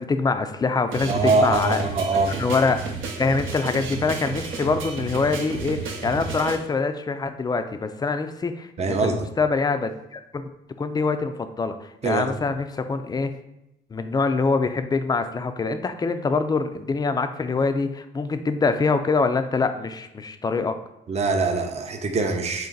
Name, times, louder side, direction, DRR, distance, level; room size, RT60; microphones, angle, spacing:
voice 1, 0.0-1.8 2.4-2.8 3.2-10.5 10.8-13.3 13.9-20.8, left 4 dB, 20° left, 9 dB, 0.3 m, -24 dB
sound 1, 0.9-6.6, right 4 dB, 80° right, 0.7 m, -32 dB
voice 2, 1.1-2.3 8.8-9.3 12.0-12.4 21.1-22.7, right 3 dB, 35° right, 5 dB, 0.5 m, -23 dB
4.0 x 2.5 x 3.8 m, 0.85 s
cardioid pair, 90°, 20 cm